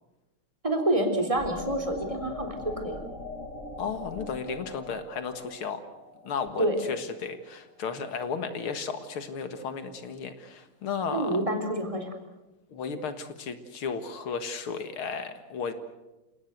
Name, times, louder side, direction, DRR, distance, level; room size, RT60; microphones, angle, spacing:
voice 1, 0.6-3.0 6.6-6.8 11.1-12.1, right 1 dB, 15° right, 4 dB, 3.7 m, -27 dB
sound 1, 1.4-8.0, left 2 dB, 35° left, 3.0 m, -42 dB
voice 2, 3.8-5.8 6.2-11.4 12.7-15.7, left 5 dB, 85° left, 9 dB, 2.5 m, -34 dB
28.5 x 18.0 x 8.0 m, 1.0 s
omnidirectional pair, 2.3 m